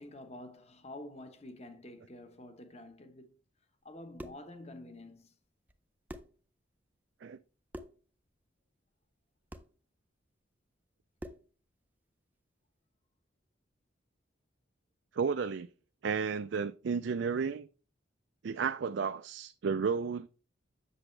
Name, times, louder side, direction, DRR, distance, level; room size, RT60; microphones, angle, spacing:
voice 1, 0.0-3.3 3.8-5.3, left 1 dB, 35° left, 1.0 m, -48 dB
sound 1, 3.9-4.5 5.7-5.8 6.1-6.4 7.7-8.1 9.5-9.8 11.2-11.5, equal, 10° right, 0.4 m, -46 dB
voice 2, 15.1-15.7 16.0-17.7 18.4-20.3, right 5 dB, 65° right, 0.4 m, -32 dB
8.1 x 6.8 x 3.2 m
head